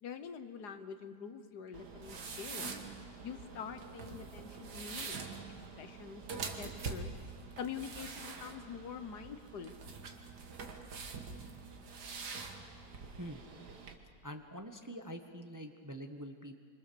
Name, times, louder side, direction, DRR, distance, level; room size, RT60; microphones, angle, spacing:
voice 1, 0.0-2.7 3.2-5.2 5.8-6.2 6.5-7.1 7.6-9.7, left 7 dB, 75° left, 10 dB, 1.7 m, -45 dB
sound 1, 1.7-13.9, right 4 dB, 75° right, 2.2 m, -45 dB
voice 2, 14.2-16.6, equal, 15° right, 5 dB, 1.0 m, -45 dB
26.0 x 25.0 x 6.9 m, 2.2 s
omnidirectional pair, 1.8 m